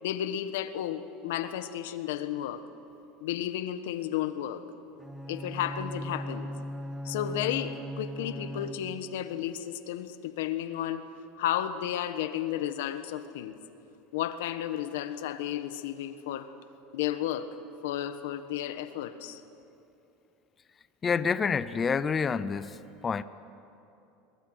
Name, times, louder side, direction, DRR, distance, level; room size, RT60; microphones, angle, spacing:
voice 1, 0.0-2.6 3.2-4.6 5.3-6.5 7.0-11.1 11.4-13.6 14.1-16.5 16.9-17.5 17.8-19.4, left 11 dB, 85° left, 10 dB, 1.3 m, -33 dB
Bowed string instrument, 5.0-9.2, equal, 5° right, 0.9 m, -38 dB
voice 2, 21.0-22.7 23.0-23.2, left 6 dB, 15° left, 14 dB, 0.5 m, -27 dB
23.0 x 21.5 x 8.1 m, 2.8 s
supercardioid pair, 175°, 0 cm